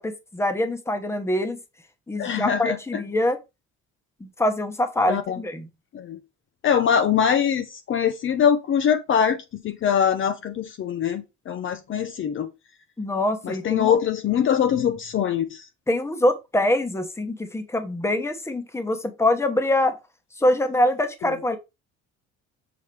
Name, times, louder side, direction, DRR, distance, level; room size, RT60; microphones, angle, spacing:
voice 1, 0.0-1.6 2.1-3.4 4.2-5.7 13.0-14.0 15.9-19.9 20.4-21.6, left 1 dB, 10° left, 1.0 m, -24 dB
voice 2, 2.2-2.8 5.1-5.4 5.9-6.2 6.6-12.5 13.4-15.7, left 8 dB, 40° left, 0.7 m, -23 dB
6.9 x 4.5 x 3.3 m
cardioid pair, 135°, 30 cm